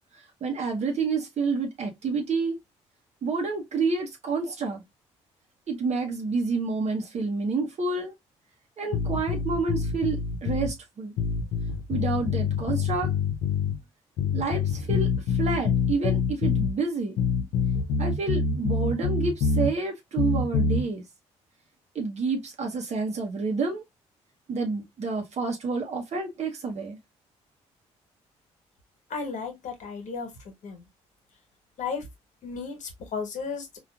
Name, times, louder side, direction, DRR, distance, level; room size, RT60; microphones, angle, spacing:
voice 1, 0.4-2.6 3.2-4.8 5.7-8.1 8.8-11.1 11.9-13.1 14.3-17.2 18.0-21.0 21.9-23.8 24.5-27.0, right 4 dB, 50° right, 0.8 m, -29 dB
sound 1, 8.9-10.7 11.2-13.8 14.2-16.7 17.2-19.7 20.2-20.8, left 5 dB, 75° left, 0.6 m, -26 dB
voice 2, 29.1-30.3 30.6-30.8 31.8-32.0 32.4-33.8, left 5 dB, 60° left, 1.2 m, -34 dB
3.7 x 2.4 x 2.3 m
hypercardioid pair, 55°, 14 cm